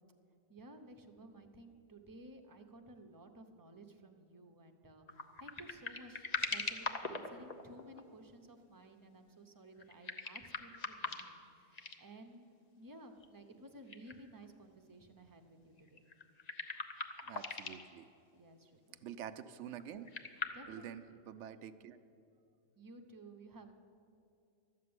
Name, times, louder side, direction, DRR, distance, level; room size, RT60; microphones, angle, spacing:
voice 1, 0.5-12.5 12.7-16.0 18.3-19.0 20.5-21.0 22.8-23.7, right 1 dB, 20° right, 4 dB, 0.7 m, -55 dB
sound 1, 5.1-8.0 9.8-11.4 11.7-12.0 13.2-13.3 13.9-14.1 14.4-14.5 15.8-17.9 19.8-20.5, left 4 dB, 35° left, 0.7 m, -41 dB
voice 2, 17.2-18.0 19.0-20.2 20.7-22.0, right 9 dB, 65° right, 11 dB, 0.9 m, -47 dB
13.0 x 7.5 x 9.6 m, 2.6 s
omnidirectional pair, 1.4 m